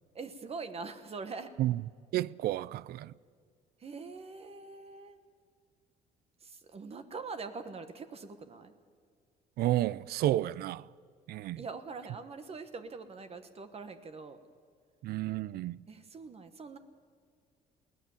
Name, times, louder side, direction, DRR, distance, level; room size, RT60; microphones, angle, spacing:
voice 1, 0.1-1.5 3.8-5.2 6.4-8.7 11.6-14.4 15.9-16.8, right 4 dB, 35° right, 1.3 m, -43 dB
voice 2, 2.1-3.1 9.6-10.9 11.3-11.6 15.0-15.8, right 14 dB, 65° right, 0.5 m, -31 dB
21.5 x 17.5 x 7.2 m
cardioid pair, 110°, 17 cm